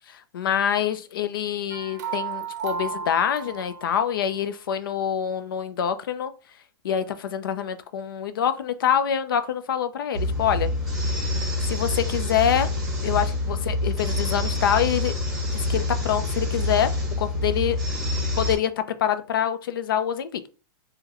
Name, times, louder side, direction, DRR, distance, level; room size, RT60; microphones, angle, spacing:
voice 1, 0.1-6.3 6.8-10.7 11.7-12.7 13.0-15.1 15.5-16.9 17.2-17.8 18.4-20.4, left 9 dB, 85° left, 0.5 m, -25 dB
sound 1, 1.7-4.2, right 6 dB, 50° right, 0.5 m, -33 dB
sound 2, 10.1-18.6, left 2 dB, ahead, 1.2 m, -26 dB
3.7 x 2.1 x 2.9 m
supercardioid pair, 160°, 11 cm